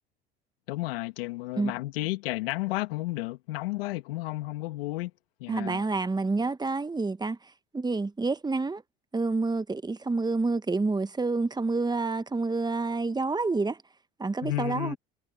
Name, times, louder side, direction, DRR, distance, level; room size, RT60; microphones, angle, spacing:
voice 1, 0.7-5.1 5.4-5.8 14.4-15.0, left 19 dB, 80° left, 2.4 m, -32 dB
voice 2, 5.5-7.4 7.7-8.8 9.1-13.8 14.2-15.0, right 3 dB, 15° right, 1.2 m, -28 dB
hypercardioid pair, 75°, 29 cm